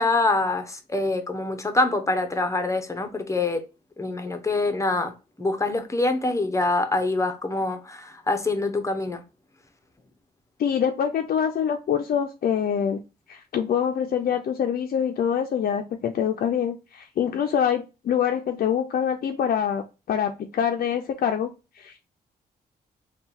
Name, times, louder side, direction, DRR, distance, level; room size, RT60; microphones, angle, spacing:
voice 1, 0.0-3.6 4.0-9.2, left 2 dB, 20° left, 0.8 m, -25 dB
voice 2, 10.6-13.0 13.3-22.0, left 8 dB, 65° left, 0.5 m, -25 dB
3.6 x 2.3 x 4.3 m
cardioid pair, 75°, 17 cm